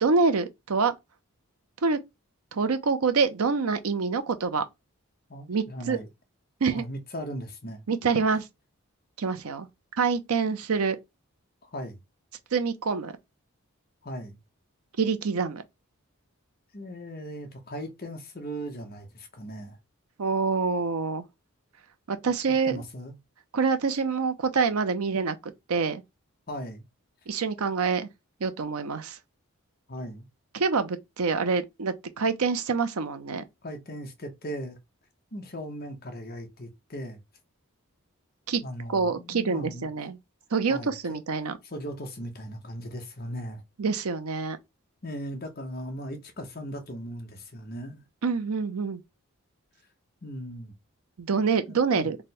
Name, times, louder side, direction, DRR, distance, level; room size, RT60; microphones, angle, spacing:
voice 1, 0.0-0.9 1.8-2.0 2.5-4.6 5.5-6.0 6.6-6.8 7.9-8.5 9.2-9.7 10.0-11.0 12.5-13.1 15.0-15.6 20.2-21.2 22.1-22.8 23.5-26.0 27.3-28.1 28.4-29.2 30.5-33.4 38.5-38.6 38.9-40.2 40.5-41.6 43.8-44.6 48.2-49.0 51.2-52.2, right 5 dB, 85° right, 0.6 m, -26 dB
voice 2, 5.3-6.1 6.7-7.8 11.6-12.0 14.0-14.4 16.7-19.8 22.5-23.2 26.5-26.8 29.9-30.3 33.6-34.8 35.3-37.2 38.6-39.9 40.7-41.2 41.6-43.6 45.0-48.0 50.2-50.7 51.9-52.1, equal, 45° left, 0.9 m, -38 dB
3.4 x 2.2 x 4.2 m
head